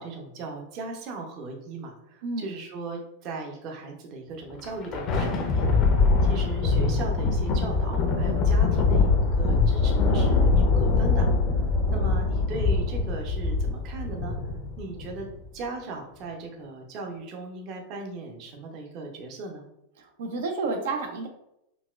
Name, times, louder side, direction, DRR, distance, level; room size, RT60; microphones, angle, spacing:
voice 1, 0.0-5.9 6.2-11.3 11.9-14.3 14.8-15.3 15.5-19.6, right 3 dB, 40° right, 2 dB, 0.6 m, -37 dB
voice 2, 2.2-2.6 20.0-21.3, right 3 dB, 75° right, 4 dB, 0.5 m, -30 dB
Thunder, 4.5-15.2, left 3 dB, 35° left, 0.5 m, -23 dB
3.9 x 2.2 x 2.3 m, 0.80 s
supercardioid pair, 150°, 0 cm